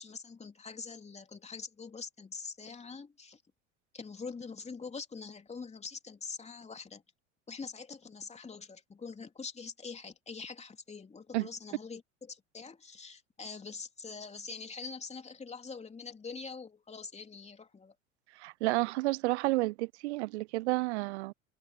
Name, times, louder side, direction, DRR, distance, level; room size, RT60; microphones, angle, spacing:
voice 1, 0.0-3.4 3.9-7.0 7.5-17.9, left 5 dB, 15° left, 3.2 m, -44 dB
voice 2, 18.4-21.3, right 21 dB, 60° right, 0.7 m, -31 dB
figure-of-eight pair, 85°, 39 cm